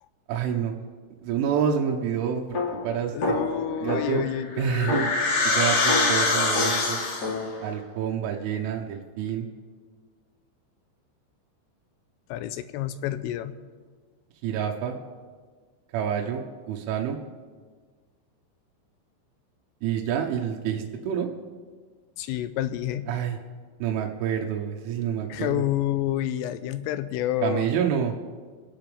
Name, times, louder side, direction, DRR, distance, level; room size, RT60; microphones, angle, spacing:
voice 1, 0.3-0.7 1.2-2.6 2.8-3.4 3.8-4.2 4.6-5.1 5.4-7.0 7.6-9.5 14.4-15.0 15.9-16.4 16.7-17.2 19.8-21.3 23.1-23.4 23.8-25.6 27.4-28.1, right 8 dB, 85° right, 1 dB, 3.3 m, -27 dB
sound 1, 2.5-4.3 4.9-7.5, left 3 dB, 40° left, 2.8 m, -30 dB
voice 2, 3.1-5.0 12.3-13.5 22.2-23.1 25.3-27.7, left 12 dB, 85° left, 12 dB, 3.2 m, -29 dB
sound 2, 4.0-7.5, left 3 dB, 60° left, 3.8 m, -24 dB
26.5 x 10.5 x 3.5 m, 1.5 s
omnidirectional pair, 5.7 m